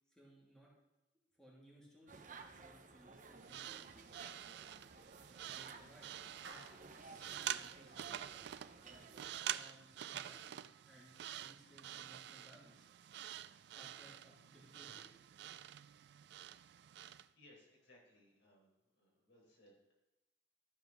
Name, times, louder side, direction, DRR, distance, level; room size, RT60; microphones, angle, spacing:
voice 1, 0.1-0.7 1.4-4.2 5.4-6.1 6.5-8.4 8.7-9.0 9.5-12.9 13.7-15.1, equal, 5° left, -6 dB, 2.6 m, -63 dB
sound 1, 2.1-9.4, right 4 dB, 45° right, 0.8 m, -56 dB
sound 2, 3.4-17.3, right 11 dB, 60° right, 0.3 m, -48 dB
Clapping, 6.4-7.1, right 3 dB, 80° right, 1.3 m, -55 dB
voice 2, 16.9-18.7 19.0-20.0, left 1 dB, 75° left, -2 dB, 4.4 m, -66 dB
13.0 x 5.1 x 6.3 m, 0.99 s
head